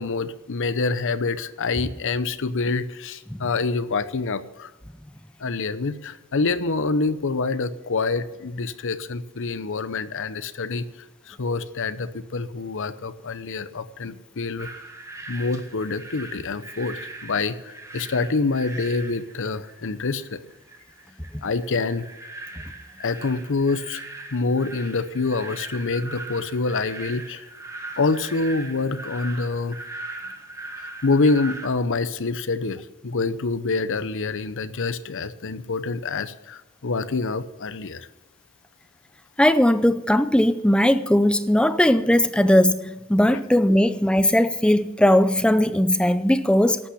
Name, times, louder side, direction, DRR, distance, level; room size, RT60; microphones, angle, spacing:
voice 1, 0.0-4.7 5.4-10.8 11.3-14.7 15.3-20.4 21.4-22.0 23.0-24.0 24.3-27.5 28.0-29.8 31.0-38.1, left 3 dB, 60° left, 0.8 m, -26 dB
sound 1, 14.6-31.7, right 2 dB, 15° right, 1.7 m, -40 dB
voice 2, 39.4-46.8, left 1 dB, 5° left, 0.6 m, -19 dB
12.0 x 8.7 x 9.9 m
head